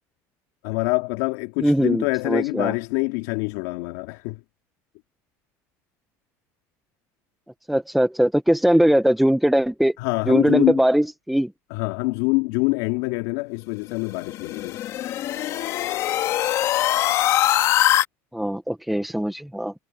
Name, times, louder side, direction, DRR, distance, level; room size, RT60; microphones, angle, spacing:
voice 1, 0.6-4.4 10.0-10.8 11.7-14.8, left 24 dB, 85° left, 2.9 m, -25 dB
voice 2, 1.6-2.7 7.7-10.0 10.3-11.5 18.3-19.7, equal, ahead, 0.8 m, -20 dB
sound 1, 14.1-18.1, left 13 dB, 45° left, 1.8 m, -22 dB
cardioid pair, 155°, 7 cm